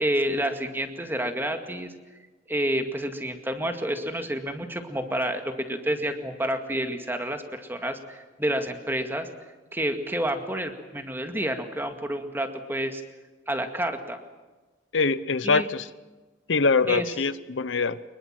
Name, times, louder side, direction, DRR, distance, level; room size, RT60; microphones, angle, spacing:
voice 1, 0.0-1.9 2.5-9.3 9.7-13.0 13.5-14.2 15.4-15.7 16.9-17.1, right 1 dB, 10° right, 6 dB, 2.1 m, -29 dB
voice 2, 14.9-15.9 16.5-18.0, left 4 dB, 85° left, 15 dB, 0.8 m, -23 dB
24.5 x 22.0 x 7.6 m, 1.2 s
head